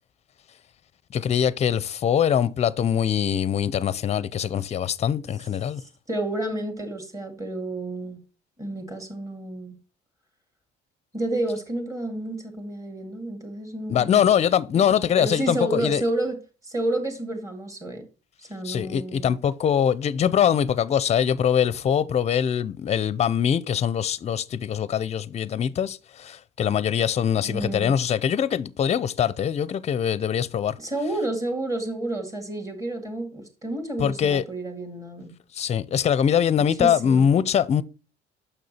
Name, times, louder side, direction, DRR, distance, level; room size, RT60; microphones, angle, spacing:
voice 1, 1.1-5.8 13.9-16.0 18.6-30.8 34.0-34.4 35.5-37.8, left 8 dB, 35° left, 0.5 m, -23 dB
voice 2, 5.8-8.2 8.6-9.8 11.1-14.3 14.9-16.4 16.6-18.0 18.4-19.3 27.4-28.0 30.8-35.3 36.6-37.3, right 1 dB, 15° right, 2.2 m, -30 dB
6.6 x 6.1 x 4.2 m
cardioid pair, 105°, 19 cm